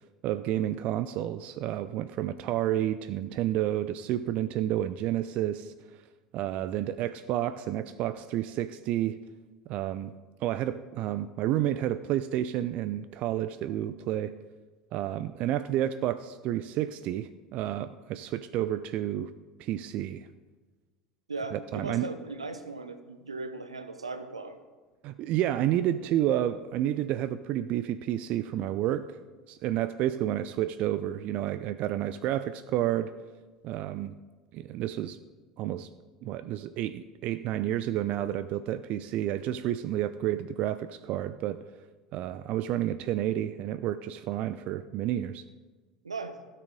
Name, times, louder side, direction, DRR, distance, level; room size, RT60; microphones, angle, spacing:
voice 1, 0.2-5.7 6.3-9.2 9.7-10.1 10.4-14.3 14.9-19.3 19.6-20.3 21.5-22.1 25.0-29.1 29.5-33.2 33.6-34.1 34.5-35.2 35.6-35.9 36.2-41.6 42.1-45.4, right 12 dB, 45° right, 13 dB, 0.4 m, -30 dB
voice 2, 21.3-24.6 46.0-46.4, right 3 dB, 80° right, 9 dB, 0.7 m, -38 dB
16.0 x 6.7 x 3.7 m, 1.3 s
figure-of-eight pair, 70°, 3 cm